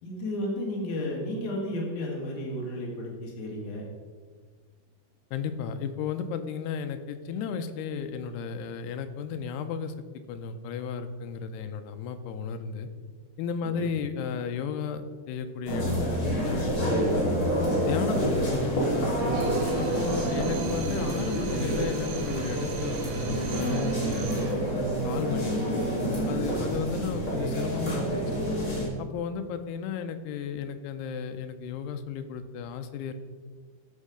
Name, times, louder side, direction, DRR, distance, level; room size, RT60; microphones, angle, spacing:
voice 1, 0.0-3.8 13.7-13.8 20.1-20.4, left 1 dB, 55° left, -3 dB, 3.2 m, -33 dB
voice 2, 5.3-9.9 10.3-12.9 13.4-17.3 17.9-19.2 19.8-24.6 25.0-25.9 26.3-28.2 29.0-33.1, left 6 dB, 85° left, 8 dB, 2.7 m, -34 dB
sound 1, 15.6-28.8, right 1 dB, 35° left, 3.6 m, -28 dB
Drill, 19.3-24.6, right 6 dB, 75° right, 2.7 m, -42 dB
15.0 x 5.4 x 5.0 m, 1.5 s
omnidirectional pair, 4.7 m